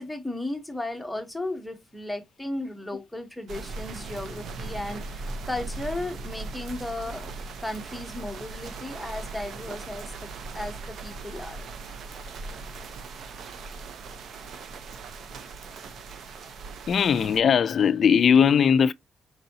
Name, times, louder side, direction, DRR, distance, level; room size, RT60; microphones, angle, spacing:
voice 1, 0.0-7.3 7.6-10.1 10.5-10.8 11.0-11.7, left 1 dB, 5° left, 0.9 m, -35 dB
sound 1, 3.5-17.4, right 3 dB, 65° right, 0.7 m, -39 dB
voice 2, 16.9-18.9, left 7 dB, 45° left, 0.3 m, -19 dB
4.6 x 3.9 x 2.7 m
cardioid pair, 155°, 0 cm